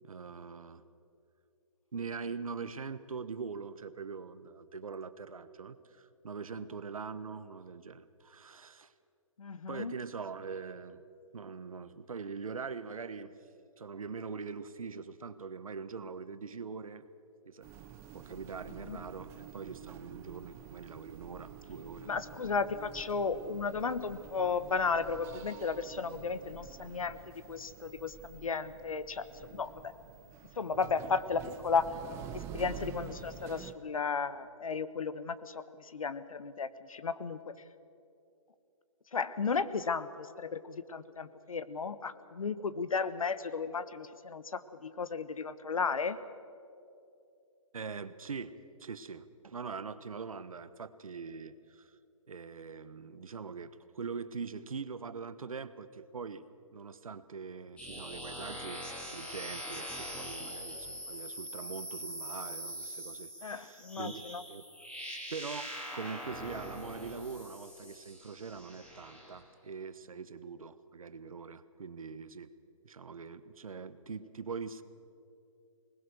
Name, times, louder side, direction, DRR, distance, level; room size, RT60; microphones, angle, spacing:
voice 1, 0.0-0.8 1.9-8.9 9.7-11.0 11.3-13.3 13.8-17.1 17.4-17.7 18.1-22.1 47.7-48.5 48.8-51.9 52.3-56.4 56.7-64.2 64.5-64.6 65.3-72.5 72.8-74.8, right 5 dB, 85° right, 13 dB, 1.1 m, -43 dB
voice 2, 9.4-9.9 18.9-19.0 22.1-27.2 27.5-29.9 30.6-31.9 32.3-37.5 39.1-46.2 63.4-64.4, left 5 dB, 85° left, 14 dB, 1.1 m, -34 dB
sound 1, 17.6-33.7, right 8 dB, 15° right, 0.8 m, -48 dB
sound 2, 57.8-69.4, equal, 5° left, 2.2 m, -43 dB
21.0 x 20.0 x 6.5 m, 2.7 s
hypercardioid pair, 155°, 17 cm